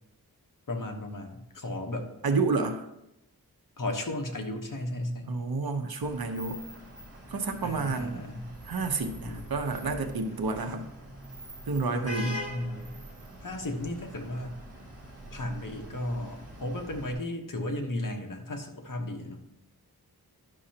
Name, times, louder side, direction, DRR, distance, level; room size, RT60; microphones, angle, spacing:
voice 1, 0.7-2.1 3.8-5.3 7.6-8.5 9.2-9.4 11.9-12.9 13.4-14.5 15.3-19.4, left 1 dB, 55° left, 3 dB, 1.2 m, -34 dB
voice 2, 2.2-2.9 5.3-6.6 7.3-8.2 8.6-10.9 11.7-12.4, right 3 dB, 70° right, 5 dB, 0.9 m, -30 dB
Vehicle horn car horn honking / Traffic noise roadway noise, 6.0-17.1, equal, 40° right, 1.9 m, -44 dB
11.0 x 6.3 x 2.9 m, 0.88 s
wide cardioid pair, 95°, 38 cm